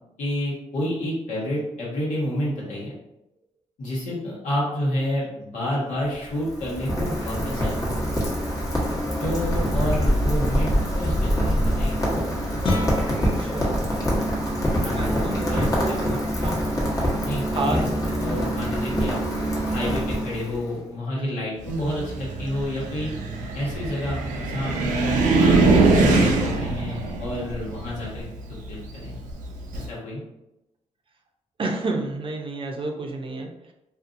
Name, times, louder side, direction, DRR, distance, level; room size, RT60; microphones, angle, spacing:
voice 1, 0.2-2.9 3.8-8.0 9.2-12.0 14.8-16.2 17.2-17.8 18.2-19.2 19.7-23.1 23.5-25.6 26.0-29.2 29.7-30.2, left 1 dB, 80° left, -6 dB, 1.2 m, -30 dB
Rain, 5.9-20.7, equal, 25° left, 1.0 m, -25 dB
Guitar, 12.6-18.2, left 2 dB, 40° left, 0.6 m, -35 dB
voice 2, 13.2-13.8 14.9-16.5 17.5-17.8 21.1-21.5 31.6-33.7, right 2 dB, 45° right, 2 dB, 0.6 m, -30 dB
Car, 21.7-29.9, right 3 dB, 85° right, 0.4 m, -22 dB
2.6 x 2.4 x 2.5 m, 0.91 s
cardioid pair, 60°, 13 cm